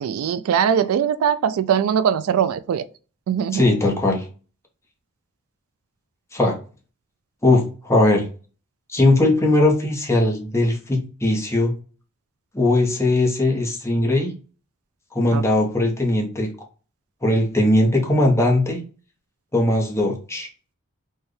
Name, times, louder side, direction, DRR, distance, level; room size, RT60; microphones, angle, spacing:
voice 1, 0.0-2.8 3.3-3.7 15.3-15.4, right 8 dB, 80° right, 0.3 m, -21 dB
voice 2, 3.5-4.2 6.3-6.6 7.4-8.3 8.9-11.7 12.5-14.3 15.1-16.5 17.2-18.8 19.5-20.5, left 2 dB, 15° left, 0.9 m, -19 dB
4.3 x 2.3 x 3.2 m
head